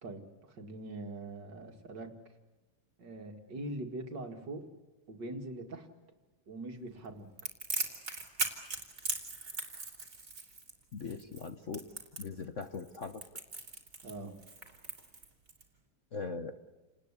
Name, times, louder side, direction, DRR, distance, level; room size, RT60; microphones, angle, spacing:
voice 1, 0.0-2.2 3.0-4.7 5.1-5.9 6.5-7.3 14.0-14.3, right 2 dB, 55° right, 5 dB, 2.7 m, -42 dB
Crackle, 7.4-15.6, right 3 dB, 40° right, 3.6 m, -39 dB
voice 2, 10.9-11.8 12.2-13.2 16.1-16.5, left 4 dB, 45° left, 8 dB, 1.1 m, -40 dB
29.0 x 19.5 x 8.4 m, 1.2 s
omnidirectional pair, 2.2 m